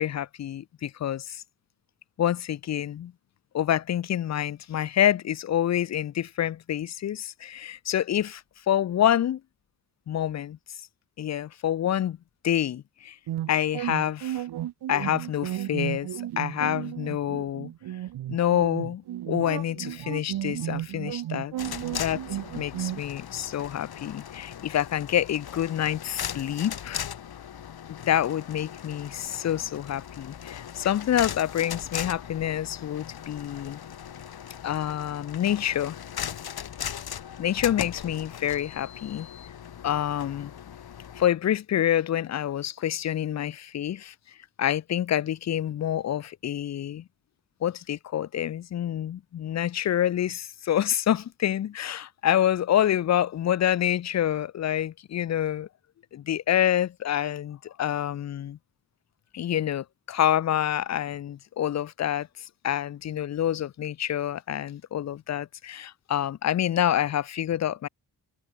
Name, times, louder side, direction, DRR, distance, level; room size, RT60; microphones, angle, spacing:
voice 1, 0.0-1.4 2.2-3.1 3.5-8.4 8.7-9.4 10.1-10.6 11.2-12.2 12.4-13.2 13.5-14.4 14.9-17.7 18.3-21.5 22.0-27.0 27.9-33.8 34.6-36.0 37.4-39.3 39.8-40.5 41.2-44.1 44.6-47.0 47.6-55.7 56.1-58.6 59.3-67.9, left 11 dB, 45° left, 0.5 m, -27 dB
sound 1, 13.3-23.0, right 13 dB, 85° right, 0.8 m, -33 dB
sound 2, 21.6-41.3, left 9 dB, 75° left, 3.3 m, -38 dB
wide cardioid pair, 150°, 38 cm